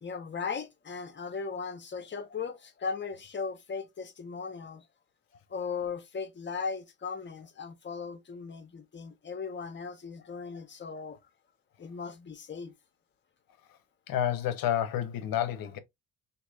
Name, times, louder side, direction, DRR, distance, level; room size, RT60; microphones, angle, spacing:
voice 1, 0.0-4.8 5.5-11.2 11.8-12.7, left 5 dB, 30° left, 0.7 m, -37 dB
voice 2, 14.1-15.8, left 10 dB, 70° left, 0.7 m, -29 dB
3.0 x 2.7 x 2.3 m
supercardioid pair, 70°, 36 cm